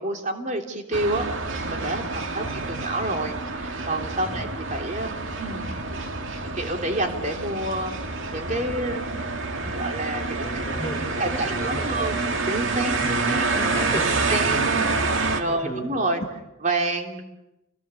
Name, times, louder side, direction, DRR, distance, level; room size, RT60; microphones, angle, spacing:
voice 1, 0.0-5.1 5.4-5.7 6.4-7.9 8.3-9.3 9.5-10.6 11.2-13.5 14.3-14.8 15.3-16.2 16.6-17.2, right 2 dB, 40° right, 3 dB, 3.3 m, -29 dB
sound 1, 0.9-15.4, right 3 dB, 75° right, 2.2 m, -27 dB
voice 2, 10.4-12.2 13.0-14.1 14.5-15.0 15.2-16.3, equal, 5° left, -8 dB, 6.1 m, -35 dB
30.0 x 22.5 x 7.1 m, 0.92 s
head